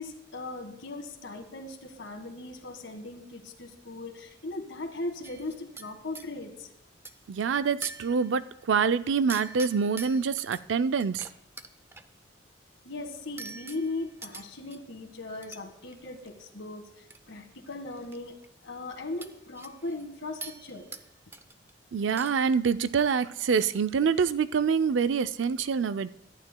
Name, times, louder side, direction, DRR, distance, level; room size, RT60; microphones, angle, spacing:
voice 1, 0.0-6.7 12.8-18.4 18.6-20.9, left 2 dB, 75° left, 5 dB, 1.7 m, -38 dB
sound 1, 5.2-6.3 7.0-7.3 7.8-8.5 9.3-10.6 11.0-12.1 13.4-14.8 15.4-15.6 15.9-16.3 17.1-17.2 17.5-18.2 18.4-18.5 19.2-20.0 20.4-21.1 21.3-21.7 22.0-22.6 22.8-23.0 23.4-23.8, right 3 dB, 10° right, 0.4 m, -44 dB
voice 2, 7.3-11.3 21.9-26.1, right 6 dB, 80° right, 13 dB, 0.4 m, -26 dB
23.5 x 11.5 x 2.3 m, 0.84 s
head